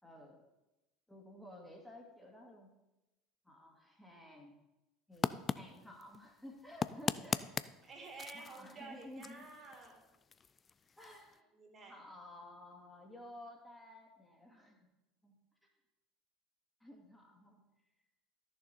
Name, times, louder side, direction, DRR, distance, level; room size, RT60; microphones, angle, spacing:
voice 1, 0.0-0.5 1.1-2.7 3.4-4.6 5.1-7.6 8.3-9.5 11.0-11.4 11.9-14.9 15.2-15.4 16.8-17.6, left 1 dB, 5° left, -1 dB, 2.1 m, -54 dB
sound 1, 5.1-11.4, left 6 dB, 30° left, 0.4 m, -41 dB
voice 2, 7.8-10.0 11.5-12.0, right 3 dB, 35° right, 2 dB, 2.5 m, -51 dB
13.5 x 6.5 x 4.3 m, 0.98 s
figure-of-eight pair, 65°, 0 cm